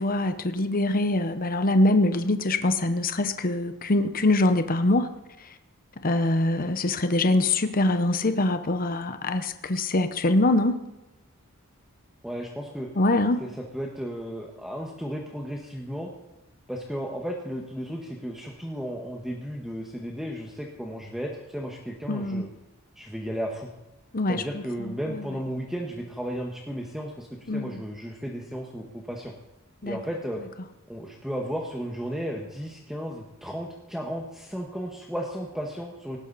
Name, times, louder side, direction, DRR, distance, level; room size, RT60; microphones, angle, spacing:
voice 1, 0.0-5.1 6.0-10.8 13.0-13.4 22.1-22.4 24.1-25.3 27.5-27.8 29.8-30.0, left 2 dB, 40° left, 9 dB, 0.9 m, -24 dB
voice 2, 12.2-12.9 13.4-16.1 16.7-22.5 22.9-23.7 24.3-29.3 29.8-30.4 30.9-36.2, equal, ahead, 0 dB, 1.5 m, -34 dB
19.0 x 17.0 x 4.2 m, 1.0 s
head